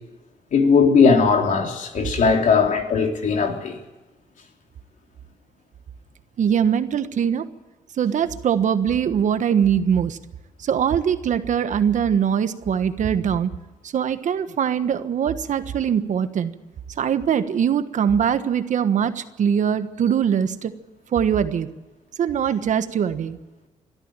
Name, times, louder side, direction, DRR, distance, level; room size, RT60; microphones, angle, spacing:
voice 1, 0.5-3.8, left 5 dB, 65° left, 3 dB, 3.5 m, -18 dB
voice 2, 6.4-7.4 8.0-10.2 10.6-13.5 13.9-16.5 17.0-20.7 21.1-21.7 22.2-23.4, right 8 dB, 60° right, 11 dB, 1.3 m, -22 dB
22.0 x 13.0 x 8.9 m, 1.1 s
cardioid pair, 80°, 14 cm